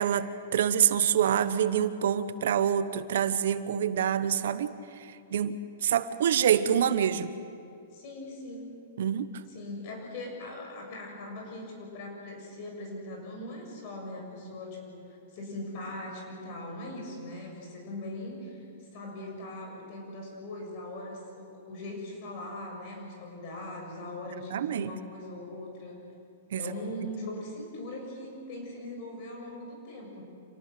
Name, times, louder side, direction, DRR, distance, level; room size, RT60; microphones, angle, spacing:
voice 1, 0.0-7.3 9.0-9.3 24.5-24.9 26.5-26.6 27.0-27.1, right 9 dB, 70° right, 13 dB, 1.0 m, -26 dB
voice 2, 7.9-8.8 9.5-18.7 18.9-26.0 26.6-30.2, left 1 dB, 45° left, 1 dB, 6.9 m, -40 dB
27.5 x 18.5 x 7.7 m, 2.5 s
hypercardioid pair, 155°, 0 cm